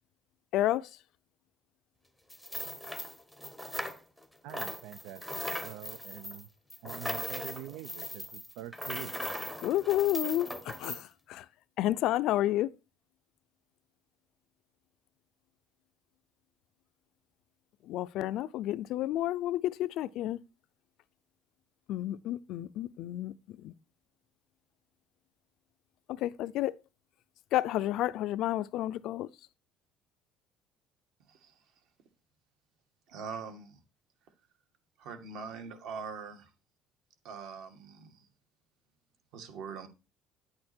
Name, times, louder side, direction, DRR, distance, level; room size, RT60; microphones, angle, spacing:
voice 1, 0.5-0.9 9.6-11.5 11.8-12.7 17.8-20.4 21.9-23.7 26.1-26.7 27.5-29.3, left 14 dB, 55° left, 0.5 m, -30 dB
sound 1, 2.3-4.2 4.5-11.0, left 1 dB, ahead, 0.8 m, -39 dB
voice 2, 4.4-6.5 6.8-9.1, right 12 dB, 75° right, 0.6 m, -45 dB
voice 3, 33.1-33.8 35.0-36.5 37.2-38.3 39.3-39.9, right 5 dB, 60° right, 2.1 m, -42 dB
10.5 x 8.6 x 4.4 m
cardioid pair, 180°, 0 cm